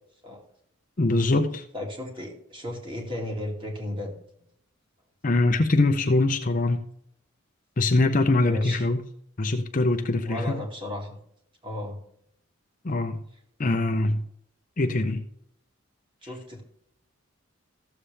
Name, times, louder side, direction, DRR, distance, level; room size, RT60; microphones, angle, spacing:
voice 1, 1.0-1.6 5.2-6.9 7.8-9.1 9.4-10.6 12.8-13.2 13.6-14.3 14.8-15.2, left 2 dB, 40° left, 0.6 m, -23 dB
voice 2, 1.7-4.1 8.3-8.9 10.2-11.2 11.6-12.0 16.2-16.6, left 1 dB, 25° right, 2.2 m, -34 dB
14.5 x 7.3 x 3.3 m
head